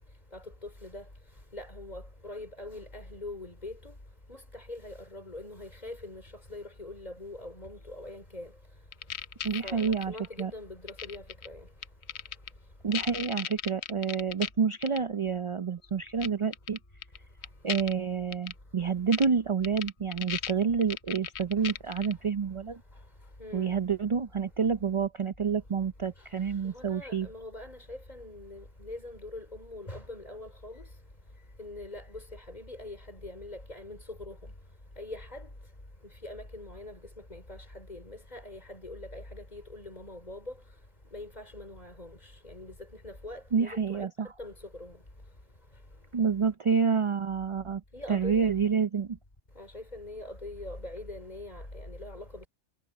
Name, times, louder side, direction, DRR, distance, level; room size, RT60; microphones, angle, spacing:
voice 1, 0.3-1.0 1.5-3.9 4.3-6.2 6.5-8.5 9.6-11.7 23.4-23.8 26.7-30.8 31.6-34.5 35.0-35.5 36.2-37.0 37.3-40.5 41.1-42.2 42.4-42.7 43.0-44.1 44.4-45.0 47.9-48.5 49.6-52.5, left 2 dB, 35° left, 4.1 m, -43 dB
sound 1, 8.9-10.4 10.9-11.5 11.8-12.5 12.9-14.5 14.8-15.0 16.2-16.3 16.5-17.2 17.4-17.9 18.3-18.5 19.1-19.3 19.6-22.1, left 10 dB, 70° left, 1.0 m, -35 dB
voice 2, 9.4-10.5 12.8-16.8 17.6-22.8 23.5-27.3 43.5-44.3 46.1-47.8 48.1-49.2, right 6 dB, 40° right, 0.4 m, -28 dB
omnidirectional pair, 1.2 m